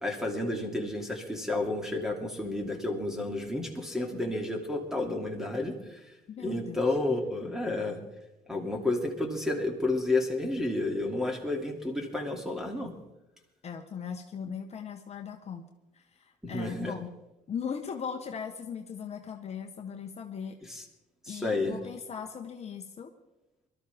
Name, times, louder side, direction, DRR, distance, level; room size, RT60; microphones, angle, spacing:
voice 1, 0.0-6.0 6.4-8.0 8.5-12.9 16.4-16.9 20.7-20.8 21.2-21.8, left 2 dB, 5° right, 2 dB, 2.7 m, -31 dB
voice 2, 6.3-6.9 13.6-17.2 17.5-20.6 21.3-23.1, left 7 dB, 40° left, 4 dB, 1.0 m, -39 dB
22.0 x 13.0 x 3.5 m, 0.96 s
cardioid pair, 110°, 17 cm